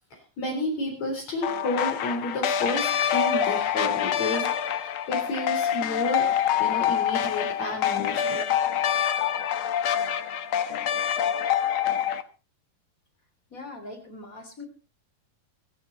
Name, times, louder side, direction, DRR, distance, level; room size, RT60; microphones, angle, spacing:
voice 1, 0.1-6.3 6.6-8.4, left 2 dB, 55° left, 1 dB, 5.1 m, -31 dB
sound 1, 1.4-12.2, left 9 dB, 75° left, 1.2 m, -26 dB
voice 2, 13.5-14.7, left 2 dB, 25° left, 7 dB, 3.3 m, -41 dB
23.5 x 9.5 x 4.1 m, 0.32 s
omnidirectional pair, 3.8 m